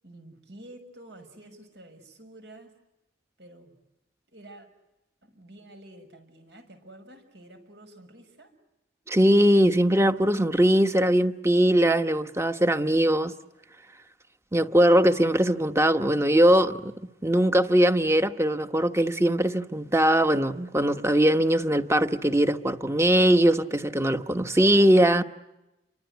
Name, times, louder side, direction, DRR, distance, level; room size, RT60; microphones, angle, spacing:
voice 1, 0.0-2.8 3.4-3.8 4.3-4.7 5.2-8.5, right 1 dB, 80° right, 6.4 m, -49 dB
voice 2, 9.1-13.3 14.5-16.9 17.2-25.2, right 1 dB, 15° right, 1.1 m, -21 dB
29.5 x 24.5 x 8.1 m
head